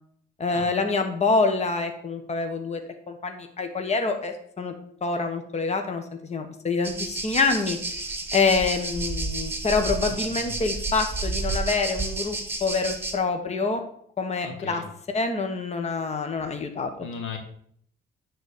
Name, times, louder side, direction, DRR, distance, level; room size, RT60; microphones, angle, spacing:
voice 1, 0.4-2.8 3.1-4.7 5.0-7.8 8.3-13.8 14.2-14.8 15.1-17.1, left 4 dB, 35° left, 6 dB, 1.2 m, -26 dB
sound 1, 6.8-13.2, right 3 dB, 10° right, 1.6 m, -31 dB
voice 2, 14.4-14.9 17.0-17.4, left 5 dB, 85° left, 5 dB, 1.7 m, -36 dB
9.5 x 4.0 x 6.6 m, 0.62 s
cardioid pair, 90°, 20 cm